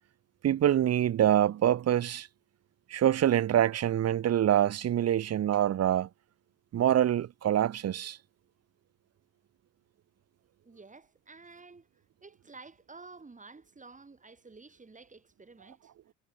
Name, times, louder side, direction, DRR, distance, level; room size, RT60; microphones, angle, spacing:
voice 1, 0.4-2.3 2.9-6.1 6.7-8.2, right 11 dB, 55° right, 1.0 m, -25 dB
voice 2, 10.6-11.9 12.2-15.9, right 3 dB, 25° right, 5.6 m, -51 dB
cardioid pair, 90°, 30 cm